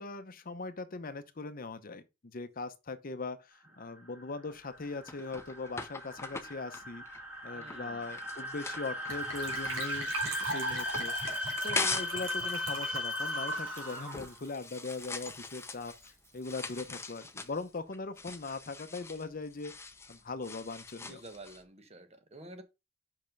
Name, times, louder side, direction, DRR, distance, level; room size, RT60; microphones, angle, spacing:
voice 1, 0.0-7.0 7.4-10.1 10.4-11.1 11.6-21.2, left 3 dB, 50° left, 0.7 m, -40 dB
sound 1, 3.7-14.4, left 1 dB, 5° right, 2.3 m, -37 dB
sound 2, 4.5-12.2 12.6-21.6, left 3 dB, 15° left, 0.7 m, -42 dB
voice 2, 7.5-8.1 21.0-22.6, right 2 dB, 35° right, 1.3 m, -50 dB
Gurgling / Trickle dribble / Fill (with liquid), 9.1-15.3 15.6-15.7 15.9-16.1 16.4-16.5, right 2 dB, 85° right, 3.0 m, -40 dB
5.7 x 5.4 x 5.2 m
head